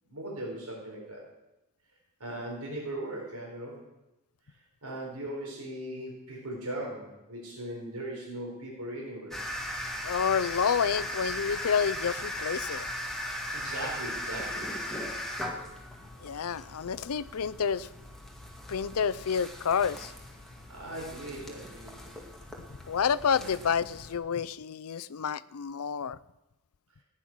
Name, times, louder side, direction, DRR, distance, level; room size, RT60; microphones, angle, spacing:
voice 1, 0.1-1.2 2.2-3.8 4.8-9.4 13.5-14.7 20.7-22.0 23.3-23.5, right 1 dB, 90° right, -2 dB, 4.4 m, -38 dB
sound 1, 9.3-24.2, equal, ahead, 2.1 m, -38 dB
voice 2, 10.0-12.9 16.2-17.9 18.7-20.1 22.9-26.2, left 7 dB, 70° left, 18 dB, 0.5 m, -29 dB
15.0 x 9.9 x 6.2 m, 0.99 s
head